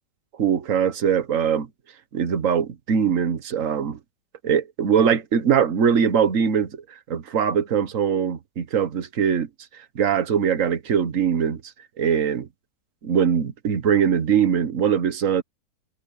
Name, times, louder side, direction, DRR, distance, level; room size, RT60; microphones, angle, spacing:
voice 1, 0.4-1.7 2.1-4.0 4.4-9.5 9.9-11.6 12.0-12.5 13.0-15.4, right 7 dB, 50° right, 1.5 m, -22 dB
omnidirectional pair, 1.8 m